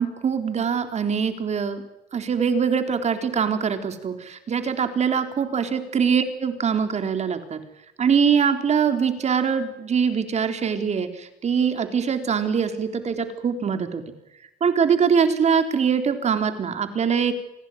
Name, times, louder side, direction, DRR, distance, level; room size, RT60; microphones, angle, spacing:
voice 1, 0.0-1.8 2.1-7.6 8.0-14.0 14.6-17.3, right 6 dB, 40° right, 7 dB, 3.7 m, -23 dB
27.0 x 18.0 x 9.2 m, 0.88 s
cardioid pair, 110°, 17 cm